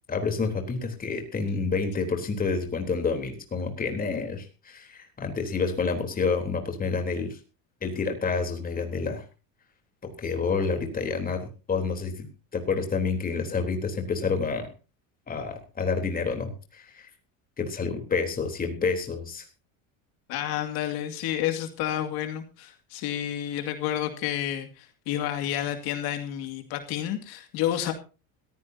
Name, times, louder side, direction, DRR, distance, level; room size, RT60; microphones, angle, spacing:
voice 1, 0.1-7.4 7.8-9.2 10.0-11.4 11.7-12.3 12.5-14.7 15.3-17.1 17.6-19.5, left 4 dB, 20° left, 4 dB, 3.6 m, -28 dB
voice 2, 20.3-27.9, left 11 dB, 60° left, 6 dB, 2.4 m, -30 dB
21.5 x 15.0 x 2.8 m, 0.33 s
cardioid pair, 150°, 42 cm